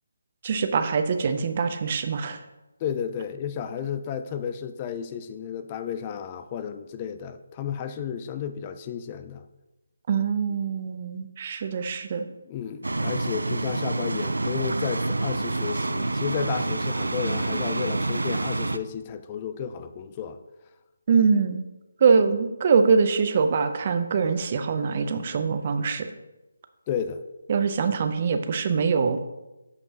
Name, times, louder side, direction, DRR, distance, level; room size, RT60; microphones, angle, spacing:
voice 1, 0.4-2.4 10.1-12.2 21.1-21.6 22.0-26.1 27.5-29.2, right 5 dB, 40° right, 9 dB, 0.6 m, -23 dB
voice 2, 2.8-9.4 12.5-20.4 26.9-27.2, left 8 dB, 25° left, 10 dB, 0.3 m, -32 dB
sound 1, 12.8-18.8, right 2 dB, 85° right, 0.4 m, -27 dB
8.1 x 5.3 x 2.9 m, 1.0 s
figure-of-eight pair, 155°, 0 cm